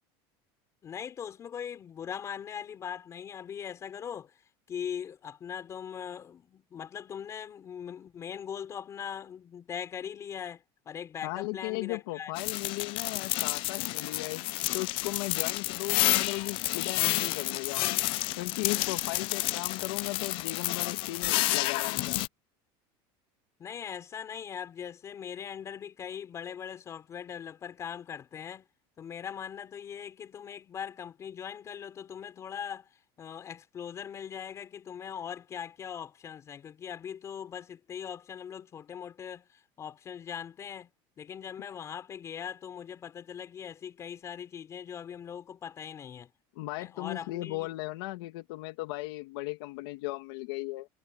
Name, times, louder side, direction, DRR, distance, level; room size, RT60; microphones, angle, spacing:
voice 1, 0.8-4.3 4.7-12.3 23.6-28.7 29.0-32.9 33.2-40.9 41.2-46.3 46.8-47.7, left 8 dB, 25° left, 5.3 m, -40 dB
voice 2, 11.2-17.9 18.4-22.2 46.6-50.9, left 21 dB, 75° left, 2.6 m, -37 dB
sound 1, 12.4-22.3, left 19 dB, 45° left, 0.7 m, -30 dB
cardioid pair, 175°, 13 cm